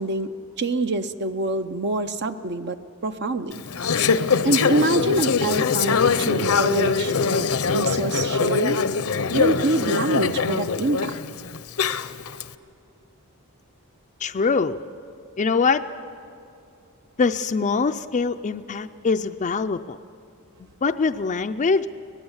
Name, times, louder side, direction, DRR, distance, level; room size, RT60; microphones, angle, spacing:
voice 1, 0.0-3.6 4.4-7.5 7.7-8.8 9.3-11.1, right 2 dB, 50° right, 9 dB, 0.6 m, -25 dB
Conversation / Chatter, 3.5-12.4, left 5 dB, 70° left, 0.7 m, -23 dB
voice 2, 14.2-14.8 15.4-15.8 17.2-20.0 20.8-21.9, left 4 dB, 35° left, 6 dB, 0.4 m, -23 dB
24.0 x 19.5 x 7.2 m, 2.6 s
head